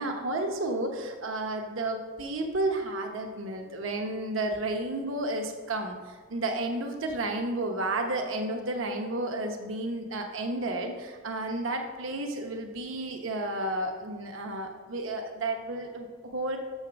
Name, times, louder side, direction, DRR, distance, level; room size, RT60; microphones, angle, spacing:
voice 1, 0.0-16.6, right 2 dB, 70° right, 3 dB, 1.0 m, -32 dB
6.6 x 5.8 x 6.8 m, 1.4 s
head